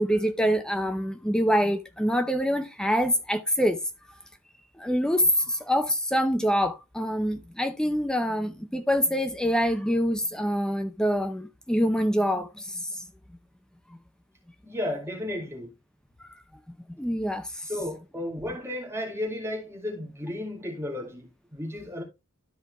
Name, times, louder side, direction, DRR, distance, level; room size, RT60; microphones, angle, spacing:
voice 1, 0.0-3.8 4.8-13.0 17.0-17.6, equal, 5° left, 0.6 m, -25 dB
voice 2, 14.6-15.7 17.7-22.0, left 1 dB, 10° right, 2.1 m, -33 dB
12.5 x 4.5 x 3.4 m
head